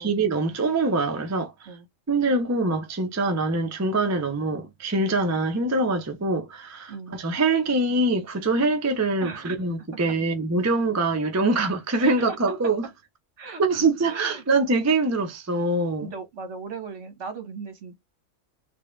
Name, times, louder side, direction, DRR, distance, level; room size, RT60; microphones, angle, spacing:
voice 1, 0.0-1.5 2.1-12.9 13.6-16.1, right 2 dB, 25° right, 0.4 m, -24 dB
voice 2, 9.2-9.5 12.0-12.4 13.4-14.4 16.0-18.0, right 5 dB, 70° right, 1.4 m, -38 dB
3.3 x 2.2 x 3.0 m
omnidirectional pair, 1.3 m